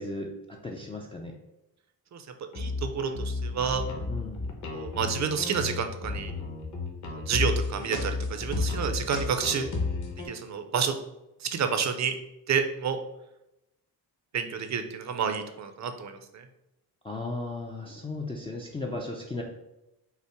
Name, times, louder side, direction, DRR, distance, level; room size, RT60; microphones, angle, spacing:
voice 1, 0.0-1.3 4.1-4.4 17.0-19.4, left 2 dB, 15° left, -1 dB, 0.4 m, -36 dB
sound 1, 2.5-10.3, left 3 dB, 50° left, 1.0 m, -32 dB
voice 2, 2.5-3.9 4.7-6.3 7.1-9.7 10.2-11.0 11.4-12.1 12.5-13.0 14.3-16.5, right 6 dB, 45° right, 7 dB, 0.6 m, -29 dB
5.6 x 2.0 x 4.4 m, 0.89 s
cardioid pair, 125°, 39 cm